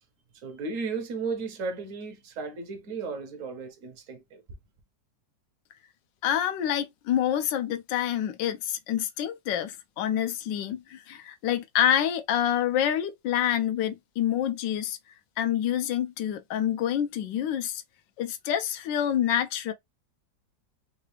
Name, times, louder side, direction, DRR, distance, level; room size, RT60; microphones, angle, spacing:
voice 1, 0.3-4.4, right 4 dB, 55° right, 1.1 m, -35 dB
voice 2, 6.2-15.0 15.4-17.8 18.2-19.7, left 10 dB, 85° left, 1.3 m, -27 dB
3.8 x 2.3 x 3.1 m
omnidirectional pair, 1.9 m